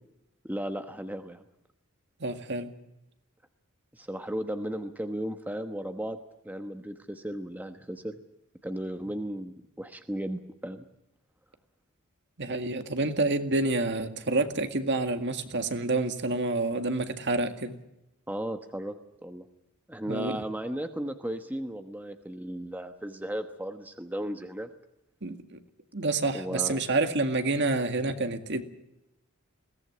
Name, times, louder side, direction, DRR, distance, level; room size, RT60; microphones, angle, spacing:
voice 1, 0.5-1.4 3.9-6.2 6.4-8.2 8.6-10.8 18.3-19.0 19.2-19.5 19.9-24.7 26.3-26.8, right 1 dB, 10° right, 1.1 m, -35 dB
voice 2, 2.2-2.7 12.4-17.8 20.1-20.4 25.2-25.6 25.9-28.6, right 2 dB, 55° right, 1.9 m, -28 dB
22.0 x 17.5 x 9.5 m
head